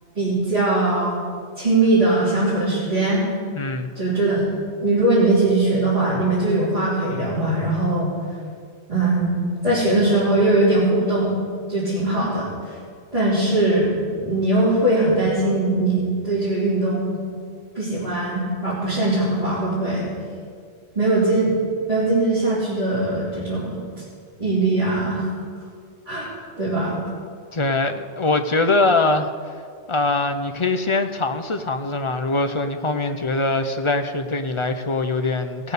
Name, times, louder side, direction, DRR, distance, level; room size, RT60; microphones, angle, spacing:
voice 1, 0.1-1.2 1.6-3.2 3.9-4.5 4.8-8.1 8.9-11.3 11.7-12.5 13.1-17.2 17.7-20.1 20.9-21.6 21.9-23.8 24.4-25.2 26.1-26.3 26.6-27.0, right 2 dB, 30° right, -11 dB, 3.2 m, -20 dB
voice 2, 3.5-3.9 27.5-29.3 29.9-35.7, left 2 dB, 35° left, 7 dB, 0.5 m, -22 dB
17.5 x 6.7 x 6.7 m, 2.1 s
omnidirectional pair, 1.2 m